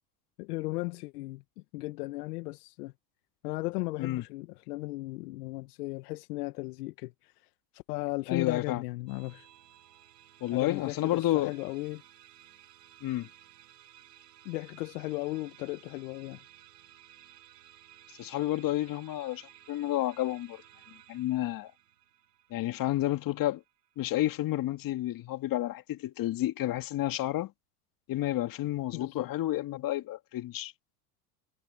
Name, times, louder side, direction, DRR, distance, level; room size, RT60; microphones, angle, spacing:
voice 1, 0.4-2.9 3.4-7.3 7.7-9.5 10.5-12.0 14.4-16.4 28.9-29.3, left 21 dB, 70° left, 1.4 m, -36 dB
voice 2, 8.3-8.8 10.4-11.5 13.0-13.3 18.2-19.4 19.7-20.6 21.1-21.7 22.5-23.6 24.0-27.5 28.1-30.7, left 14 dB, 45° left, 2.3 m, -30 dB
Musical instrument, 9.1-24.6, right 12 dB, 85° right, 7.7 m, -57 dB
hypercardioid pair, 95°, 47 cm